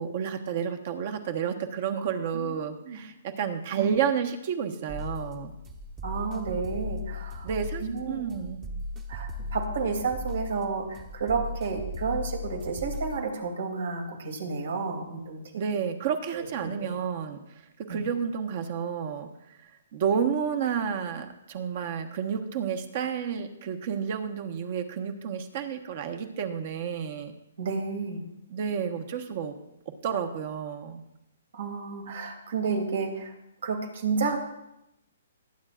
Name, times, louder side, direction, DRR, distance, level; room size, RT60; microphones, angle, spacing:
voice 1, 0.0-5.5 7.4-8.6 15.6-17.4 17.8-19.6 19.9-27.3 28.5-29.5 30.0-31.0, right 7 dB, 45° right, 7 dB, 1.3 m, -30 dB
sound 1, 4.9-13.2, left 2 dB, 20° right, 1.0 m, -37 dB
voice 2, 6.0-7.5 7.8-8.2 9.1-15.6 16.3-16.9 17.9-18.0 27.6-28.2 31.5-33.3 33.6-34.4, right 4 dB, 75° right, 3 dB, 2.7 m, -31 dB
20.0 x 9.1 x 2.5 m, 0.85 s
hypercardioid pair, 150°, 0 cm